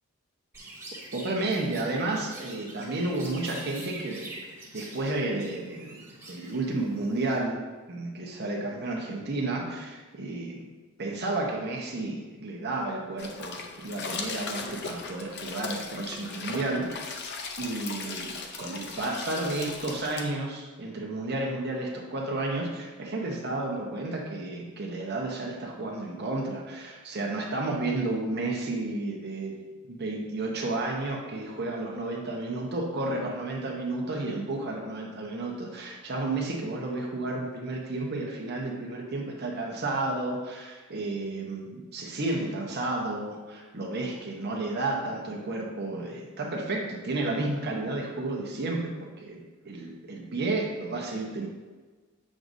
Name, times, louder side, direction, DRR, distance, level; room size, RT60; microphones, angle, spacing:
Chirp tweet, 0.5-7.4, right 2 dB, 10° right, 1.4 m, -45 dB
voice 1, 1.1-4.3 4.7-6.0 6.3-7.6 7.9-10.7 11.0-16.9 17.6-29.6 29.9-51.5, right 2 dB, 45° right, 0 dB, 0.9 m, -32 dB
sound 1, 13.2-20.3, left 4 dB, 50° left, 0.6 m, -38 dB
7.6 x 6.2 x 2.6 m, 1.3 s
head